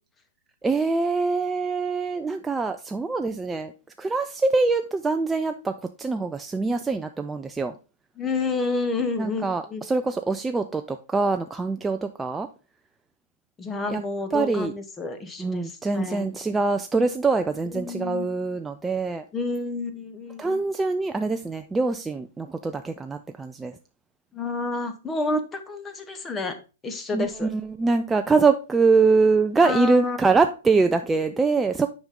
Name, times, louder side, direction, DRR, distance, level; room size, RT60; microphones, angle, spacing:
voice 1, 0.6-3.7 4.0-7.7 9.2-12.5 13.9-14.0 14.3-14.7 15.4-19.3 20.4-23.8 27.1-31.9, right 4 dB, 10° right, 0.3 m, -24 dB
voice 2, 8.2-9.4 9.7-9.8 13.6-16.3 17.7-18.3 19.3-20.6 24.3-26.5 26.8-27.5 29.6-30.3, left 3 dB, 15° left, 1.0 m, -29 dB
6.1 x 5.1 x 3.6 m
hypercardioid pair, 130°, 0 cm